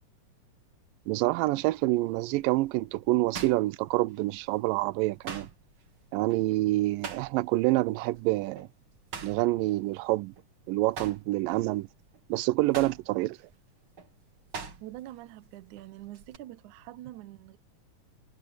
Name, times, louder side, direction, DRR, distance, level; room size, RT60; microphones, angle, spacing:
sound 1, 1.1-1.4 2.0-4.5 4.7-7.7 8.0-8.2 8.5-10.5 10.8-15.2 15.4-16.4, right 5 dB, 40° right, 2.8 m, -43 dB
voice 1, 1.1-5.5 6.1-8.7 9.2-10.3 10.7-11.9 12.3-13.4, right 19 dB, 90° right, 2.3 m, -27 dB
voice 2, 14.8-17.6, right 15 dB, 75° right, 2.1 m, -45 dB
omnidirectional pair, 3.9 m